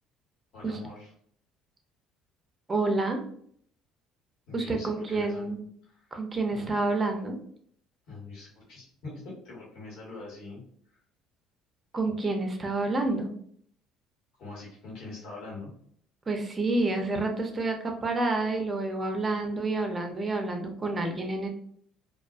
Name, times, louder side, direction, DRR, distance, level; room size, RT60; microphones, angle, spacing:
voice 1, 0.5-1.1 4.5-5.5 5.9-6.0 6.5-6.8 8.1-10.6 14.4-15.7, left 3 dB, 65° left, -4 dB, 1.3 m, -43 dB
voice 2, 2.7-3.2 4.5-5.6 6.1-7.4 11.9-13.3 16.3-21.5, right 2 dB, 30° right, 4 dB, 0.6 m, -29 dB
2.3 x 2.1 x 2.5 m, 0.62 s
hypercardioid pair, 65°, 0 cm